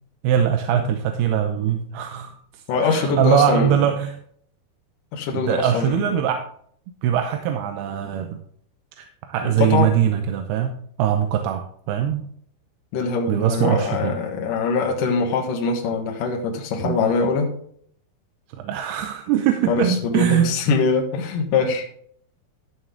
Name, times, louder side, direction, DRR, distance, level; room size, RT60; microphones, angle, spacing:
voice 1, 0.2-4.2 5.3-6.5 7.0-8.4 9.0-12.3 13.3-14.1 16.8-17.0 18.5-20.6, right 9 dB, 85° right, 6 dB, 2.7 m, -22 dB
voice 2, 2.7-3.8 5.1-6.1 9.4-9.9 12.9-17.5 19.7-21.9, left 4 dB, 65° left, 0 dB, 2.8 m, -23 dB
13.0 x 7.4 x 3.5 m, 0.62 s
omnidirectional pair, 4.5 m